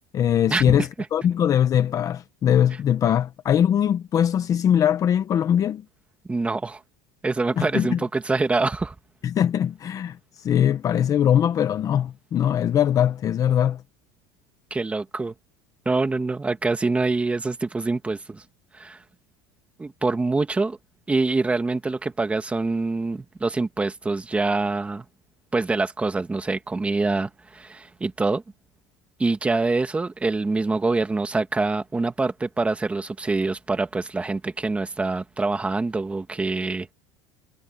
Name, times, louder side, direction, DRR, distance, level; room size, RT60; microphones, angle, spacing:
voice 1, 0.1-5.8 7.6-8.0 9.2-13.8, left 9 dB, 30° left, 0.9 m, -21 dB
voice 2, 6.3-6.8 7.2-8.9 14.7-15.3 15.9-18.4 18.7-19.0 19.8-20.8 21.1-25.1 25.5-28.4 29.2-36.9, right 3 dB, 10° right, 1.8 m, -25 dB
cardioid pair, 155°, 12 cm